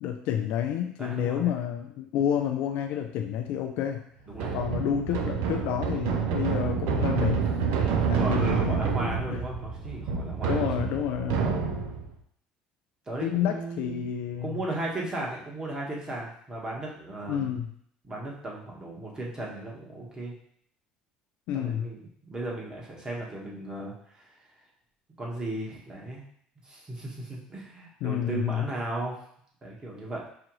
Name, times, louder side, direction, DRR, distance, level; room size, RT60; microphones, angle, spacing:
voice 1, 0.0-4.1 4.5-7.5 8.1-9.4 10.5-11.9 13.2-14.6 17.3-17.7 21.5-21.9 28.0-28.7, left 9 dB, 70° left, 4 dB, 0.3 m, -30 dB
voice 2, 1.0-1.6 4.3-4.5 7.7-11.0 13.1-14.1 14.4-17.5 18.0-20.3 21.5-22.0 22.3-24.3 25.2-26.2 26.6-29.2 29.6-30.2, right 2 dB, 25° right, -3 dB, 1.4 m, -36 dB
sound 1, 4.3-12.1, right 6 dB, 80° right, 0.5 m, -28 dB
5.6 x 2.5 x 3.0 m, 0.65 s
supercardioid pair, 90°, 3 cm